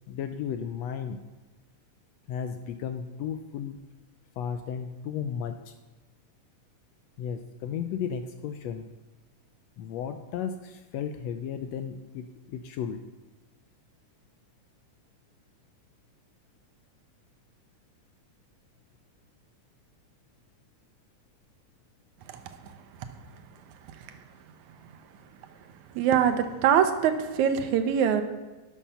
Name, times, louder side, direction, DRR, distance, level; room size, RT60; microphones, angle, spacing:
voice 1, 0.1-1.2 2.3-3.9 4.4-5.7 7.2-8.9 9.8-13.0, left 8 dB, 80° left, 8 dB, 1.6 m, -34 dB
voice 2, 26.0-28.2, right 8 dB, 80° right, 9 dB, 2.2 m, -23 dB
12.5 x 7.3 x 5.6 m, 1.2 s
omnidirectional pair, 3.4 m